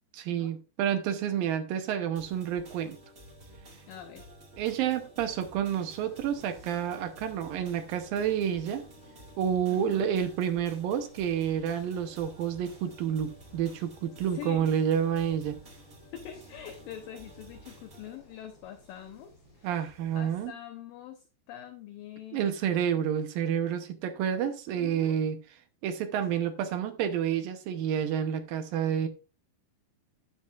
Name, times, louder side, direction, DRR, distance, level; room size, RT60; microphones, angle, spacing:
voice 1, 0.1-3.0 4.6-8.9 9.4-15.6 19.6-20.5 22.3-25.4 25.8-29.1, right 9 dB, 75° right, 2.3 m, -29 dB
sound 1, 2.1-18.1, equal, 45° right, 0.8 m, -52 dB
voice 2, 3.9-4.3 9.7-10.1 14.3-14.7 16.1-23.0 24.8-25.2 26.3-26.5, left 11 dB, 75° left, 2.2 m, -45 dB
sound 2, 5.7-20.5, left 1 dB, 10° left, 4.3 m, -59 dB
13.0 x 9.5 x 2.4 m
omnidirectional pair, 4.7 m